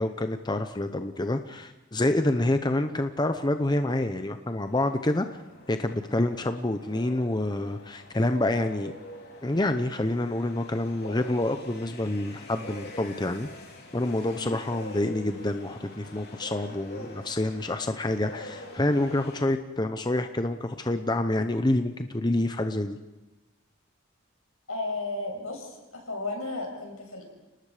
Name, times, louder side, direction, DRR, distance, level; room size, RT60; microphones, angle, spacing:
voice 1, 0.0-5.4 5.7-8.9 9.4-13.5 13.9-23.0, left 1 dB, 20° left, 8 dB, 0.7 m, -27 dB
sound 1, 4.7-19.4, left 1 dB, 50° left, 3.7 m, -46 dB
voice 2, 24.7-27.3, left 2 dB, 85° left, 1 dB, 6.6 m, -34 dB
29.5 x 19.5 x 5.0 m, 1.1 s
head